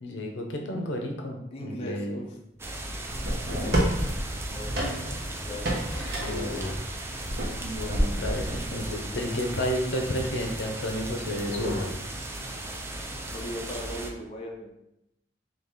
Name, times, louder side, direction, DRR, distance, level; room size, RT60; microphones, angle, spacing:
voice 1, 0.0-2.2 7.6-11.9, equal, 80° left, 2 dB, 0.7 m, -31 dB
voice 2, 1.5-2.3 4.5-4.8 5.5-5.8 6.3-6.7 13.3-14.7, equal, 35° left, -1 dB, 0.6 m, -39 dB
sound 1, 2.6-14.1, right 1 dB, 15° right, 0.4 m, -37 dB
sound 2, 3.1-9.3, right 1 dB, 60° right, 1.0 m, -30 dB
sound 3, 3.2-4.1 4.7-5.5 6.2-6.8 7.7-7.8 8.8-9.4 10.6-10.7 10.9-11.0 11.5-11.9 13.2-13.4, left 2 dB, 50° left, 1.1 m, -35 dB
4.0 x 2.8 x 3.6 m, 0.84 s
head